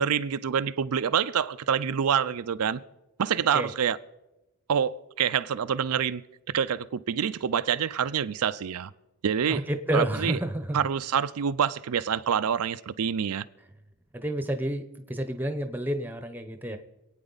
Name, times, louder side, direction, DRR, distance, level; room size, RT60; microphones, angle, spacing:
voice 1, 0.0-2.8 3.2-4.0 4.7-6.2 6.5-8.9 9.2-9.6 9.9-10.4 10.7-13.5, right 7 dB, 85° right, 0.5 m, -26 dB
voice 2, 9.5-10.8 14.1-16.8, right 1 dB, 10° right, 0.8 m, -30 dB
26.5 x 9.0 x 4.0 m
head